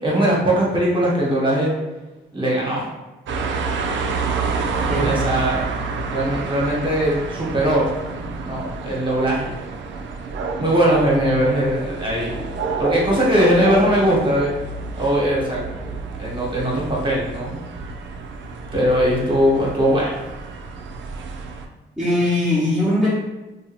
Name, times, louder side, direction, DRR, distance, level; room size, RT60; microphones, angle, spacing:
voice 1, 0.0-1.7 2.3-2.9 5.0-5.7 6.1-7.9 8.4-9.5 10.6-12.4 12.8-14.5 15.0-15.6 16.2-17.5 18.7-20.2, equal, 25° right, -5 dB, 1.1 m, -20 dB
sound 1, 3.3-21.7, right 4 dB, 65° right, 0.4 m, -29 dB
voice 2, 4.9-5.2 22.0-23.1, left 1 dB, ahead, -9 dB, 0.9 m, -20 dB
2.7 x 2.3 x 2.9 m, 1.1 s
cardioid pair, 65°, 21 cm